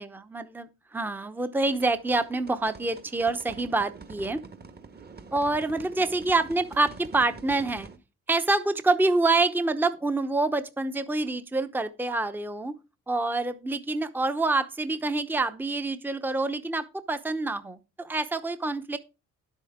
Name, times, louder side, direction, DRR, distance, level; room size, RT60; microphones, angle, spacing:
voice 1, 0.0-4.4 5.3-7.9 8.3-12.7 13.1-19.0, right 2 dB, 5° right, 0.8 m, -27 dB
sound 1, 1.7-8.0, right 4 dB, 35° right, 1.5 m, -46 dB
10.5 x 8.3 x 3.6 m
cardioid pair, 90°, 30 cm